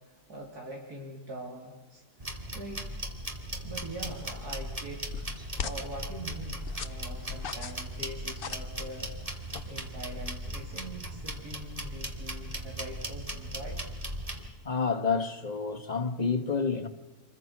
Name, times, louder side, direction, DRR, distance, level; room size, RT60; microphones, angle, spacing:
voice 1, 0.1-2.9 3.6-5.2 5.6-13.8, right 1 dB, 80° right, 4.4 m, -43 dB
sound 1, 2.2-14.5, right 1 dB, 25° right, 2.6 m, -38 dB
sound 2, 4.0-10.2, left 6 dB, 45° left, 0.9 m, -43 dB
voice 2, 14.6-16.9, left 5 dB, 25° left, 1.8 m, -29 dB
28.0 x 23.0 x 6.1 m
omnidirectional pair, 1.6 m